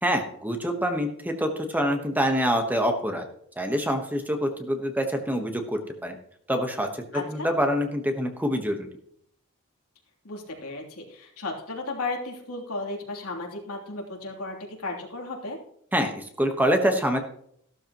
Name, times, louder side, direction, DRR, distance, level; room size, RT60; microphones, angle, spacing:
voice 1, 0.0-3.3 3.6-6.2 6.5-8.9 15.9-17.2, equal, 10° right, 4 dB, 1.2 m, -26 dB
voice 2, 7.1-7.5 10.2-15.6, left 2 dB, 85° left, -1 dB, 3.1 m, -34 dB
15.0 x 12.5 x 3.0 m, 0.67 s
head